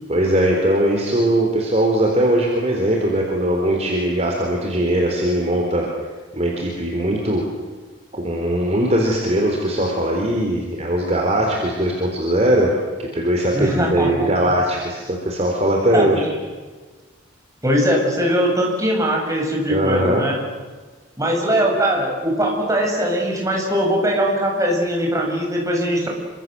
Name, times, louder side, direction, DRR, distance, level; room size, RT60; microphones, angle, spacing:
voice 1, 0.1-5.9 6.3-7.5 8.1-16.2 19.7-20.2, right 1 dB, 35° right, 0 dB, 4.1 m, -20 dB
voice 2, 13.5-14.3 15.9-16.1 17.6-20.4 21.2-26.1, equal, 15° right, 0 dB, 7.4 m, -20 dB
28.0 x 25.5 x 7.9 m, 1.4 s
head